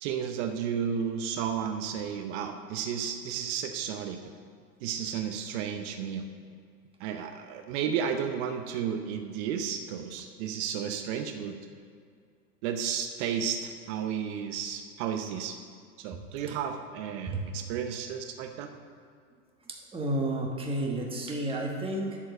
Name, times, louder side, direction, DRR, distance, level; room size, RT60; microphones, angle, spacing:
voice 1, 0.0-4.2 4.8-6.2 7.0-11.6 12.6-15.6 16.0-18.7, right 8 dB, 45° right, 6 dB, 0.8 m, -33 dB
voice 2, 19.7-22.2, right 1 dB, 10° right, 0 dB, 1.2 m, -31 dB
11.0 x 4.9 x 6.5 m, 2.2 s
hypercardioid pair, 120°, 48 cm